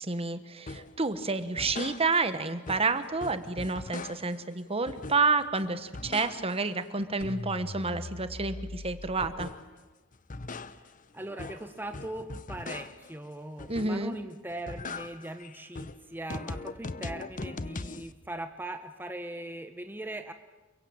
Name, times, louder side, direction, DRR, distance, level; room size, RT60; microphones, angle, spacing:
voice 1, 0.0-9.5 13.7-14.2, right 3 dB, 30° right, 11 dB, 1.4 m, -29 dB
sound 1, 0.7-1.0 1.4-2.4 2.7-4.5 4.9-5.5 5.8-6.7 7.0-9.8 10.1-13.2 13.6-14.2 14.5-18.1, left 3 dB, 40° left, 0.9 m, -40 dB
voice 2, 11.1-20.3, right 1 dB, 10° right, 6 dB, 1.2 m, -40 dB
29.0 x 23.0 x 8.9 m, 1.2 s
head